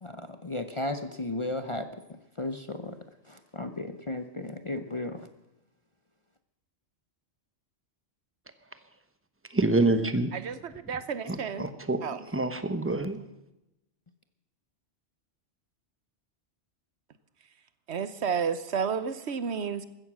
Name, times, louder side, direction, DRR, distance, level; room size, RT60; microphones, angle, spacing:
voice 1, 0.0-2.0 2.4-3.0 3.3-5.3, left 2 dB, 30° left, 8 dB, 0.7 m, -34 dB
voice 2, 9.5-10.3 11.3-12.0 12.3-13.2, right 2 dB, 10° right, 10 dB, 0.9 m, -26 dB
voice 3, 10.3-11.7 12.0-12.2 17.9-19.8, right 6 dB, 65° right, 13 dB, 1.1 m, -31 dB
15.5 x 13.5 x 6.2 m, 0.90 s
omnidirectional pair, 1.2 m